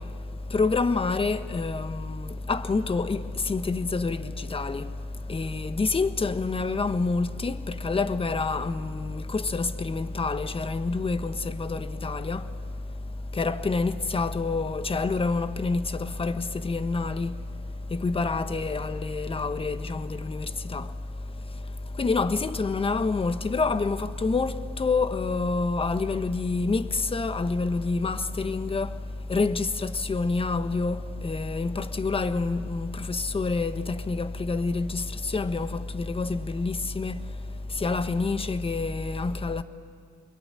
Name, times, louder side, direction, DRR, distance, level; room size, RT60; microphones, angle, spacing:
voice 1, 0.5-3.2 3.5-4.2 4.5-4.9 5.3-7.6 7.8-12.4 13.4-15.9 16.2-16.4 16.6-17.3 17.9-20.8 22.0-24.5 24.8-28.9 29.3-31.0 31.2-35.0 35.3-37.2 37.8-39.6, left 3 dB, 30° left, 1.3 m, -27 dB
26.5 x 21.5 x 9.7 m
cardioid pair, 90°, 20 cm